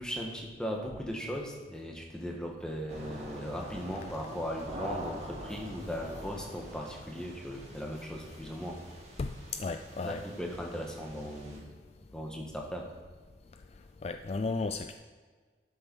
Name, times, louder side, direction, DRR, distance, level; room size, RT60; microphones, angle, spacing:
voice 1, 0.0-8.8 10.0-11.6 12.1-12.9, equal, 5° left, 0 dB, 1.5 m, -38 dB
sound 1, 2.9-11.6, right 1 dB, 40° right, 2.6 m, -45 dB
voice 2, 9.2-10.2 14.0-14.9, left 3 dB, 35° left, 8 dB, 0.4 m, -34 dB
12.5 x 6.7 x 5.4 m, 1.5 s
head